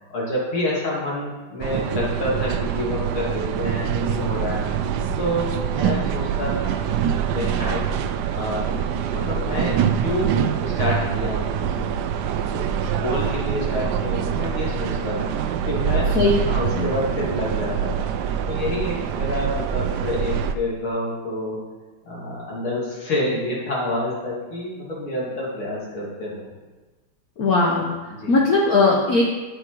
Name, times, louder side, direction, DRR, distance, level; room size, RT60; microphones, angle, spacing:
voice 1, 0.1-4.7 5.2-6.8 7.2-8.0 8.3-11.9 12.5-16.1 16.4-18.1 18.5-21.6 22.0-26.5 28.1-28.3, left 1 dB, 75° left, -5 dB, 3.3 m, -28 dB
sound 1, 1.6-20.5, right 8 dB, 80° right, 0.9 m, -25 dB
voice 2, 27.4-27.9 28.3-29.2, left 3 dB, 55° left, -2 dB, 1.2 m, -18 dB
8.5 x 7.9 x 4.7 m, 1.2 s
omnidirectional pair, 2.3 m